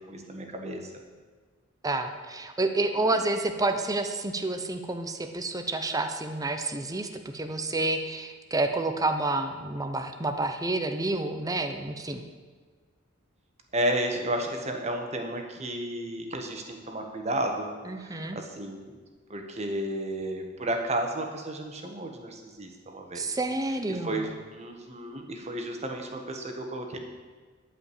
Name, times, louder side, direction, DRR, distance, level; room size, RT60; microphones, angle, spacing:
voice 1, 0.1-0.9 13.7-17.7 18.0-18.9 19.3-23.2 23.9-27.0, right 1 dB, 35° right, 3 dB, 1.4 m, -32 dB
voice 2, 1.8-12.2 17.9-18.4 23.1-24.3, right 2 dB, 20° right, 7 dB, 0.8 m, -29 dB
11.5 x 5.2 x 8.5 m, 1.5 s
head